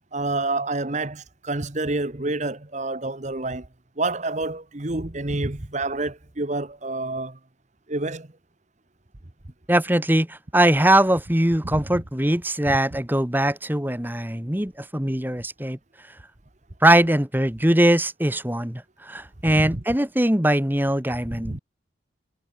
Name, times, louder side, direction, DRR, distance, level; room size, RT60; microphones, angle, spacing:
voice 1, 0.1-3.7 4.0-7.4 7.9-8.3 11.7-11.8 19.6-19.8 21.4-21.6, right 2 dB, 35° right, 1.3 m, -28 dB
voice 2, 9.7-15.8 16.8-21.6, right 1 dB, 10° right, 1.6 m, -21 dB
head